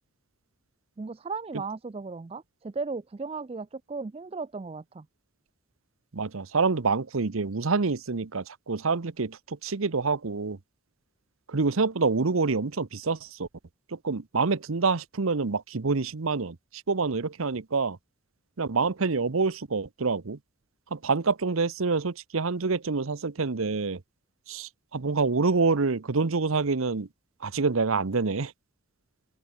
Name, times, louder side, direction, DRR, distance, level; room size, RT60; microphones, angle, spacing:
voice 1, 1.0-5.1, right 4 dB, 25° right, 0.3 m, -36 dB
voice 2, 6.1-10.6 11.5-13.5 13.9-16.6 16.9-18.0 18.6-20.4 20.9-24.0 24.5-27.1 27.4-28.5, right 4 dB, 80° right, 0.9 m, -27 dB
open air
head